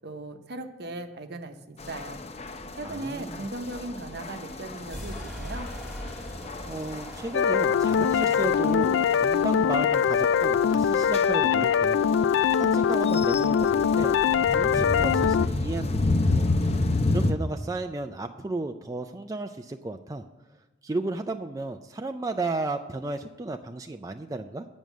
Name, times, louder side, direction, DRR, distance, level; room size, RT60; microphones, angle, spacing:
voice 1, 0.0-2.2 2.8-5.7, right 2 dB, 60° right, 7 dB, 0.9 m, -38 dB
sound 1, 1.8-17.3, left 2 dB, 35° left, 0.6 m, -31 dB
voice 2, 2.8-3.4 6.7-14.2 14.5-16.5 16.8-20.2 20.8-24.7, right 2 dB, 20° right, 6 dB, 0.4 m, -34 dB
sound 2, 4.8-12.5, equal, ahead, 1.8 m, -43 dB
sound 3, 7.3-15.5, left 7 dB, 70° left, 0.3 m, -22 dB
9.1 x 6.3 x 8.1 m, 1.1 s
head